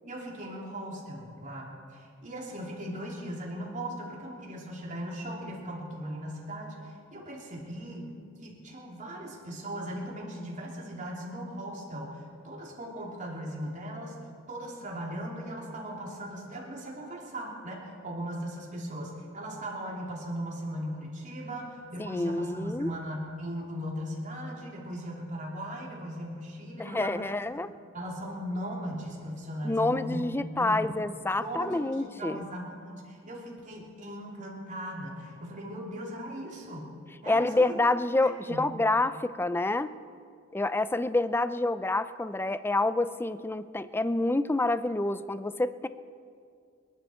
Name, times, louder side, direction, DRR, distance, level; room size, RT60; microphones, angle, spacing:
voice 1, 0.0-8.1 8.4-27.3 27.9-30.9 31.4-36.9 37.2-37.8 38.2-38.7, equal, 40° right, -2 dB, 3.2 m, -38 dB
voice 2, 22.0-22.9 26.8-27.7 29.6-32.4 37.3-39.9 40.5-45.9, left 2 dB, 10° left, 13 dB, 0.4 m, -28 dB
28.5 x 11.5 x 4.4 m, 2.3 s
head